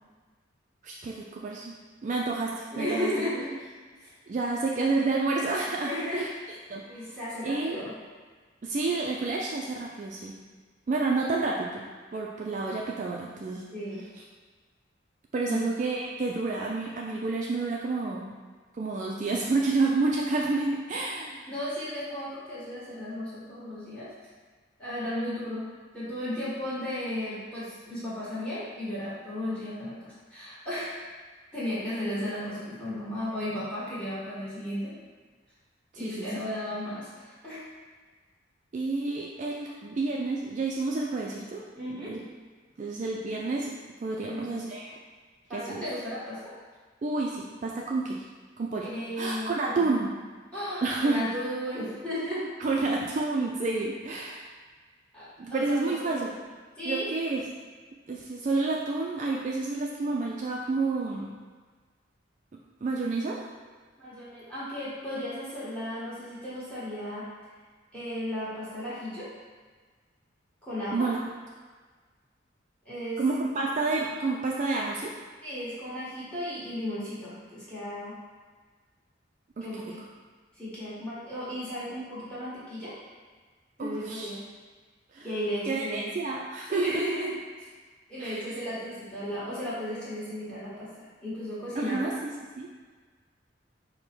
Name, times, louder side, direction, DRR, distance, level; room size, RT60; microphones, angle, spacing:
voice 1, 0.8-1.7 2.0-3.3 4.3-6.3 6.7-6.8 7.4-7.8 8.6-10.3 10.9-11.8 12.1-13.6 15.3-18.3 18.7-21.4 36.0-36.3 38.7-41.6 42.1-42.2 42.8-43.7 44.0-44.9 45.5-45.8 47.0-48.2 48.6-48.9 49.2-50.1 50.8-51.3 52.6-54.5 55.4-56.3 56.9-57.4 58.1-61.3 62.8-63.4 70.9-71.2 73.2-75.1 79.6-79.7 83.8-84.3 85.1-85.3 85.7-86.9 88.2-88.4 91.8-92.3 92.6-92.7, right 3 dB, 40° right, -2 dB, 0.3 m, -29 dB
voice 2, 2.3-3.6 4.0-4.1 5.8-6.6 6.8-7.9 13.7-14.0 15.4-15.7 21.5-24.1 24.8-25.7 25.9-30.9 31.5-35.0 35.9-37.6 41.7-42.1 44.2-44.7 45.5-46.5 48.8-49.8 50.5-52.5 55.1-56.3 56.8-57.1 64.0-67.3 67.9-69.3 70.6-71.1 72.8-73.2 75.4-78.1 79.6-80.0 80.5-82.9 83.8-84.4 85.2-86.1 86.7-87.7 88.1-92.1, equal, 5° left, -11 dB, 1.4 m, -35 dB
5.0 x 2.1 x 4.4 m, 1.4 s
head